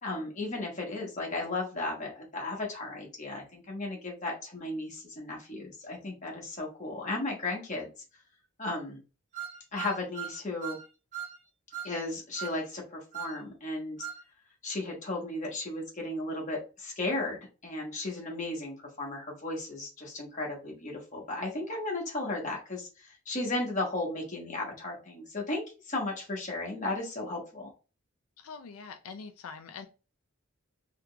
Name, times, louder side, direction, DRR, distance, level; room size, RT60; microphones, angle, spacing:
voice 1, 0.0-7.9 8.6-9.0 9.7-10.8 11.8-14.1 14.6-27.7, left 2 dB, 35° left, -1 dB, 1.1 m, -35 dB
sound 1, 9.3-10.8 11.1-11.4 11.7-12.0 12.3-12.6 13.1-13.4 14.0-14.2, right 9 dB, 35° right, 0.7 m, -39 dB
voice 2, 28.4-29.9, left 5 dB, 85° left, 7 dB, 0.4 m, -44 dB
3.7 x 2.8 x 2.3 m, 0.32 s
head